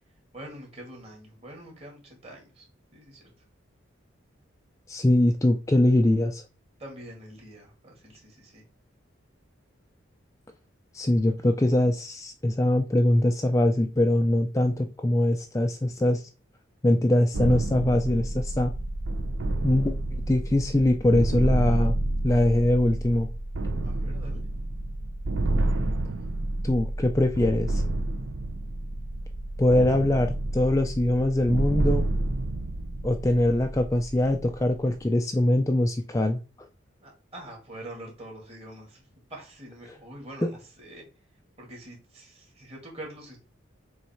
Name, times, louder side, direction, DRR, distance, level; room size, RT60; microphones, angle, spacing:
voice 1, 0.3-2.7 2.9-3.3 6.8-8.6 23.8-24.4 37.0-41.0 41.6-43.4, right 1 dB, 30° right, 2.3 m, -45 dB
voice 2, 4.9-6.4 10.9-16.3 16.8-18.7 19.6-20.0 20.3-22.0 22.2-23.3 26.6-27.8 29.6-32.1 33.0-36.4 40.4-40.5, left 1 dB, 15° left, 0.4 m, -22 dB
sound 1, 17.3-35.0, right 1 dB, 75° right, 0.8 m, -29 dB
7.1 x 3.2 x 4.5 m
head